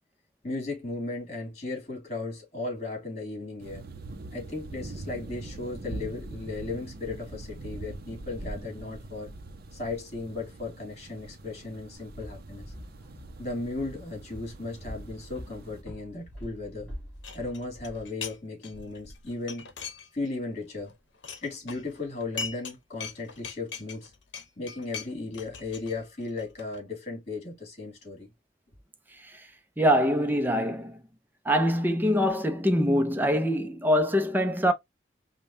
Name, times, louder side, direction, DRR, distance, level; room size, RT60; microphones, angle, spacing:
voice 1, 0.4-3.9 4.3-9.3 9.7-12.7 13.4-16.9 17.3-19.7 20.1-21.0 21.4-24.1 24.6-28.3 32.2-32.3, left 3 dB, 40° left, 2.2 m, -36 dB
sound 1, 3.6-15.8, right 2 dB, 55° right, 0.6 m, -43 dB
Walk footsteps, 12.0-18.1, equal, 10° left, 2.9 m, -45 dB
sound 2, 17.2-18.4 18.6-20.4 20.7-22.7 23.0-26.8, left 6 dB, 80° left, 0.8 m, -41 dB
voice 2, 29.8-31.0 31.5-34.7, equal, 10° right, 0.6 m, -24 dB
5.1 x 2.3 x 2.6 m
head